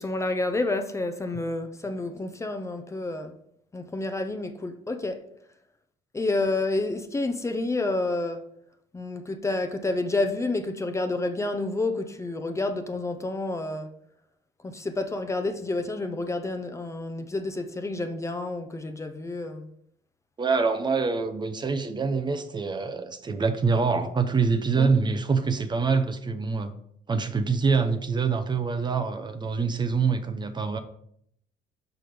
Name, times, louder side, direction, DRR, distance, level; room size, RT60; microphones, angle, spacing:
voice 1, 0.0-3.3 3.7-5.2 6.1-8.4 8.9-13.9 14.6-19.7 24.7-24.9, left 2 dB, 15° left, 0.6 m, -29 dB
voice 2, 20.4-26.7 27.1-30.8, right 5 dB, 25° right, 0.6 m, -25 dB
6.1 x 5.1 x 5.0 m
cardioid pair, 110°, 17 cm